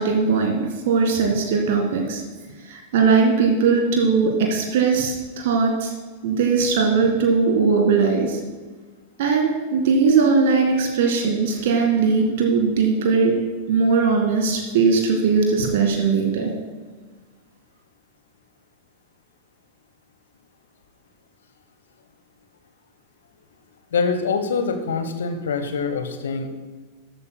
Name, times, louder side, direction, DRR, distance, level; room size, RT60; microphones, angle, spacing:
voice 1, 0.0-2.2 2.7-5.9 6.2-8.4 9.2-13.3 13.7-16.5, right 5 dB, 55° right, 2 dB, 1.9 m, -19 dB
voice 2, 23.9-26.5, left 5 dB, 65° left, 8 dB, 1.1 m, -24 dB
13.5 x 12.5 x 2.2 m, 1.4 s
figure-of-eight pair, 90°, 0 cm